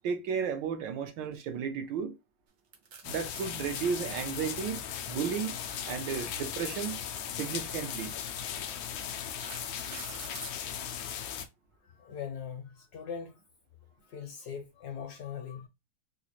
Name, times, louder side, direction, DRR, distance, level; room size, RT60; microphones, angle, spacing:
voice 1, 0.0-2.2 3.0-4.8 5.1-5.6 5.8-7.0 7.3-8.1, right 7 dB, 75° right, 1.3 m, -33 dB
sound 1, 2.7-3.5 5.0-6.4 7.5-7.7 8.3-8.4 9.0-10.6, right 6 dB, 60° right, 0.9 m, -46 dB
sound 2, 3.0-11.5, left 8 dB, 90° left, 0.8 m, -37 dB
voice 2, 11.8-13.4 14.0-15.7, left 7 dB, 70° left, 1.0 m, -41 dB
3.8 x 2.4 x 2.9 m
omnidirectional pair, 2.2 m